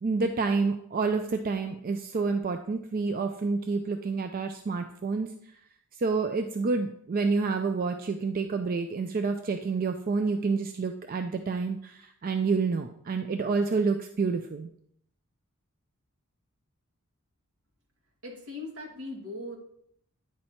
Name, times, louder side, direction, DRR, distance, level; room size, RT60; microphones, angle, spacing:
voice 1, 0.0-5.3 6.0-14.7, right 4 dB, 40° right, 6 dB, 0.4 m, -28 dB
voice 2, 18.2-19.6, left 2 dB, 75° right, -2 dB, 2.1 m, -39 dB
9.7 x 4.2 x 4.4 m, 0.69 s
head